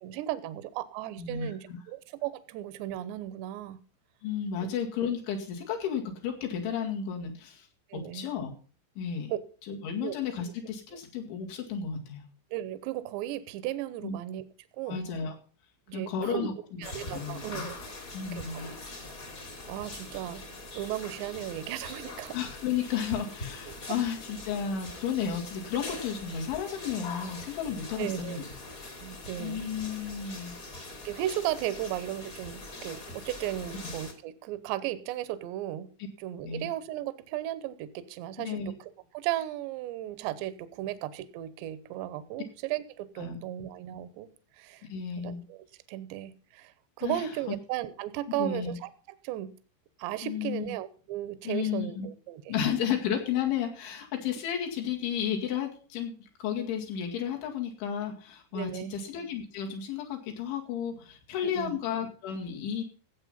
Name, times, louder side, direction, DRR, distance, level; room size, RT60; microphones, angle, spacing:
voice 1, 0.0-3.8 7.9-8.3 9.3-9.4 10.0-10.1 12.5-14.4 14.8-15.0 15.9-16.5 16.8-17.8 18.3-18.6 19.7-20.4 20.8-22.4 23.9-24.0 28.0-28.4 29.0-29.6 30.7-35.9 36.2-44.3 44.6-44.8 45.2-46.7 47.0-48.9 49.2-49.5 50.0-52.5 58.5-59.0 61.6-61.8, right 13 dB, 80° right, 15 dB, 2.8 m, -35 dB
voice 2, 1.2-1.8 4.2-7.7 8.1-8.5 9.0-9.3 9.6-12.2 14.0-14.2 14.9-15.3 15.9-16.8 17.1-17.7 18.1-18.7 22.3-28.4 29.4-30.6 36.4-36.7 38.4-38.7 43.2-43.4 44.9-45.4 47.0-47.3 48.4-48.8 50.2-50.6 51.4-52.1 52.5-62.8, left 8 dB, 70° left, 1 dB, 4.3 m, -33 dB
sound 1, 16.8-34.1, left 2 dB, 35° left, 1.5 m, -43 dB
16.0 x 8.1 x 5.5 m, 0.39 s
omnidirectional pair, 5.7 m